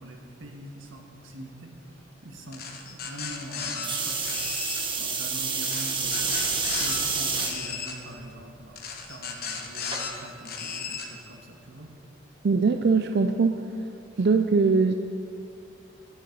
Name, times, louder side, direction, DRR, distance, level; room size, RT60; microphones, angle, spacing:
voice 1, 0.0-2.6 2.9-4.4 5.0-6.3 6.8-11.9 14.2-14.3, right 1 dB, 90° right, 1 dB, 1.7 m, -43 dB
sound 1, 2.5-3.9 4.2-4.8 5.6-7.0 7.3-7.9 8.8-10.1 10.4-11.1, left 6 dB, 50° left, 1.2 m, -35 dB
sound 2, 3.8-7.5 8.2-8.6 9.9-10.0, right 4 dB, 25° right, 1.2 m, -28 dB
voice 2, 12.4-13.9 14.2-14.9, right 4 dB, 55° right, 6 dB, 0.4 m, -22 dB
11.5 x 10.0 x 5.2 m, 2.5 s
head